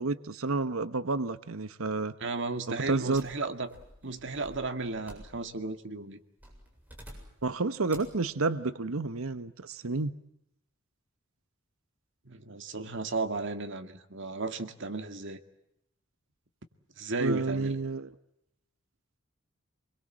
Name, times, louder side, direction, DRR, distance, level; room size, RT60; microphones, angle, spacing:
voice 1, 0.0-2.1 2.7-3.2 7.4-10.1 17.2-18.1, right 3 dB, 85° right, 12 dB, 1.1 m, -30 dB
voice 2, 2.2-3.7 4.0-6.2 12.3-15.4 17.0-17.8, right 3 dB, 60° right, 8 dB, 2.1 m, -34 dB
sound 1, 3.1-5.7 6.4-7.5 7.9-8.2, equal, 10° right, 7.6 m, -51 dB
28.0 x 22.0 x 7.7 m, 0.81 s
head